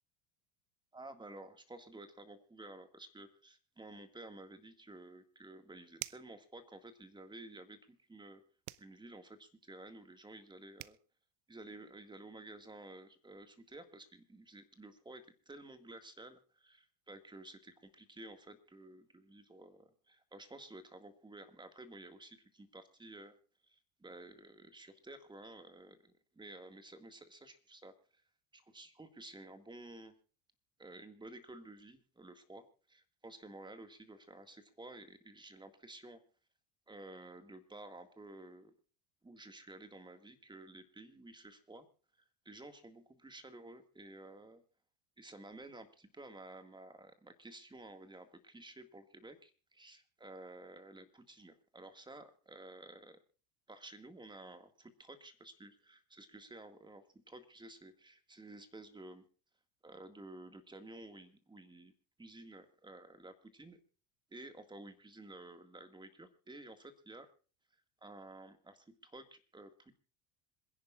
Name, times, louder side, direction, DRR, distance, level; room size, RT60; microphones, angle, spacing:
voice 1, 0.9-8.4 8.8-11.0 11.5-23.3 23.7-28.2 28.5-30.1 30.8-36.2 36.9-38.7 39.2-41.9 42.5-44.6 45.2-53.2 53.7-59.2 59.8-61.9 62.2-63.8 64.3-67.3 68.0-69.9, right 2 dB, 10° right, 8 dB, 2.0 m, -53 dB
sound 1, 6.0-6.4 8.6-8.9 10.5-10.6 10.8-11.0, right 20 dB, 80° right, 0.8 m, -45 dB
27.0 x 11.0 x 2.5 m, 0.37 s
supercardioid pair, 110°, 44 cm